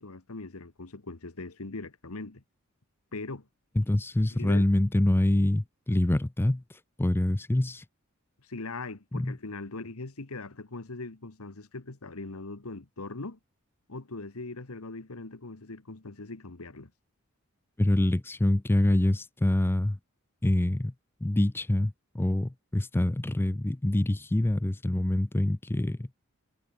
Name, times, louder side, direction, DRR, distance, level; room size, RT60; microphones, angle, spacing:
voice 1, 0.0-2.4 3.1-3.5 4.4-4.6 8.4-13.4 13.9-16.9, left 3 dB, 75° left, 1.5 m, -40 dB
voice 2, 3.8-7.8 9.1-9.4 17.8-20.0 20.4-20.9 21.2-26.1, left 1 dB, 10° left, 0.4 m, -26 dB
head